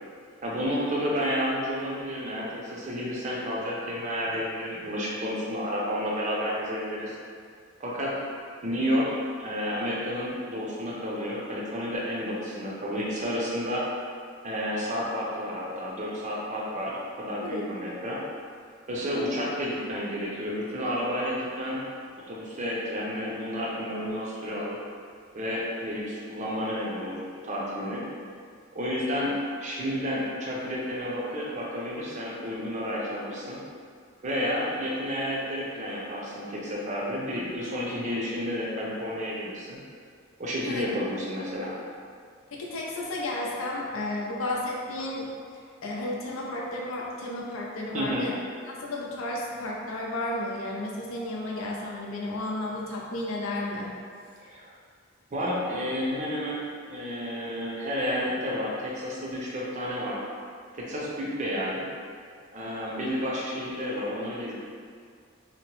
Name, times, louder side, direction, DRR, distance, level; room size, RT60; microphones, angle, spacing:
voice 1, 0.4-7.2 7.8-8.2 8.6-9.1 9.4-13.8 14.4-18.2 18.9-21.8 22.3-24.8 25.3-27.2 27.4-28.0 28.7-29.3 29.6-33.6 34.2-39.8 40.4-41.7 47.9-48.2 54.5-54.7 55.3-60.2 60.7-61.8 62.5-64.5, equal, 35° right, -4 dB, 0.5 m, -31 dB
voice 2, 42.5-45.3 45.8-48.3 48.7-53.9, left 1 dB, 80° left, -3 dB, 0.5 m, -32 dB
2.8 x 2.0 x 2.9 m, 2.1 s
head